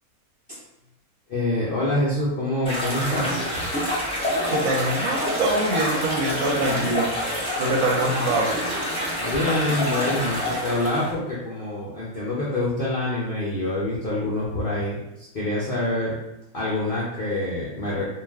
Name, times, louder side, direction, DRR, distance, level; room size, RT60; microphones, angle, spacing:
voice 1, 1.3-3.7 9.2-16.1 16.5-18.1, left 1 dB, 65° left, -7 dB, 0.5 m, -26 dB
sound 1, 2.6-11.1, equal, 5° left, 0.6 m, -27 dB
voice 2, 4.5-7.1 7.6-8.5, right 2 dB, 70° right, -1 dB, 0.9 m, -24 dB
2.3 x 2.3 x 3.3 m, 0.88 s
omnidirectional pair, 1.7 m